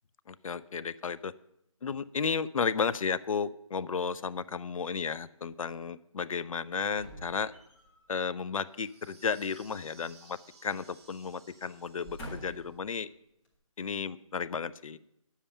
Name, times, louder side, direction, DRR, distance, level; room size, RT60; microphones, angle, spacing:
voice 1, 0.3-1.3 1.8-7.5 8.1-13.1 13.8-15.0, left 6 dB, 75° left, 16 dB, 0.5 m, -33 dB
sound 1, 7.0-8.1 9.6-10.8 11.1-11.3 11.8-12.8 13.4-13.5, right 1 dB, 15° left, 1.5 m, -48 dB
sound 2, 8.7-12.8, right 4 dB, 50° right, 1.8 m, -59 dB
10.0 x 7.4 x 5.5 m, 0.80 s
hypercardioid pair, 160°, 18 cm